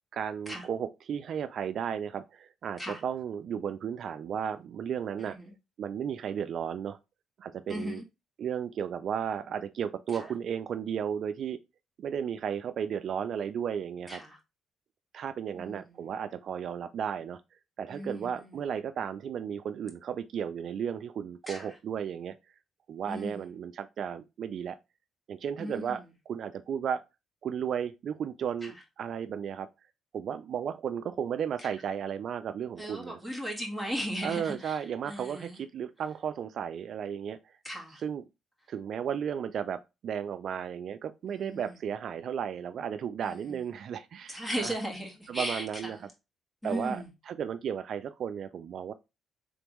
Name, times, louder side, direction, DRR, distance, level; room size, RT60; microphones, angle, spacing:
voice 1, 0.1-5.4 5.8-7.0 7.4-8.0 8.4-11.6 12.0-14.2 15.1-17.4 17.8-22.4 22.9-24.8 25.3-27.0 27.4-29.7 30.1-33.2 34.2-37.4 37.9-38.2 38.7-44.8 45.3-46.1 46.6-48.9, right 8 dB, 65° right, 0.3 m, -34 dB
voice 2, 7.7-8.0 14.1-14.2 15.6-15.7 17.9-18.3 21.5-21.6 23.1-23.4 25.6-25.9 32.8-34.7 35.1-35.5 37.6-38.0 41.3-41.6 44.3-45.6 46.6-47.1, equal, 10° left, 1.5 m, -35 dB
3.9 x 3.4 x 3.0 m
cardioid pair, 90°, 0 cm